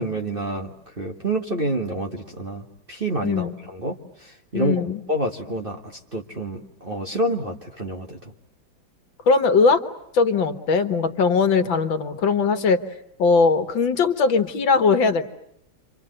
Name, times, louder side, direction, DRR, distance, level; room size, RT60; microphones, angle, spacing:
voice 1, 0.0-4.8 5.1-5.8 6.1-8.2, right 1 dB, 30° right, 2 dB, 1.8 m, -28 dB
voice 2, 3.2-3.5 4.5-5.0 9.3-9.8 10.1-12.8 13.2-15.2, left 4 dB, 75° left, 9 dB, 2.3 m, -20 dB
29.5 x 25.0 x 7.9 m, 0.77 s
omnidirectional pair, 2.1 m